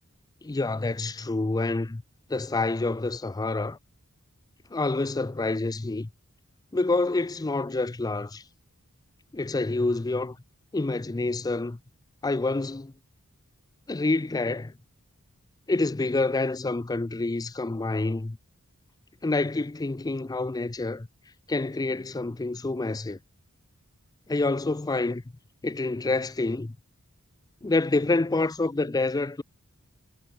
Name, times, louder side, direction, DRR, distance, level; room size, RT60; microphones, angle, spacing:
voice 1, 0.4-2.0 2.3-3.8 4.7-6.1 6.7-8.4 9.3-10.4 10.7-11.8 12.2-12.9 13.9-14.7 15.7-18.4 19.2-21.1 21.5-23.2 24.3-25.2 25.6-26.7 27.6-29.4, left 2 dB, 15° left, 0.4 m, -27 dB
head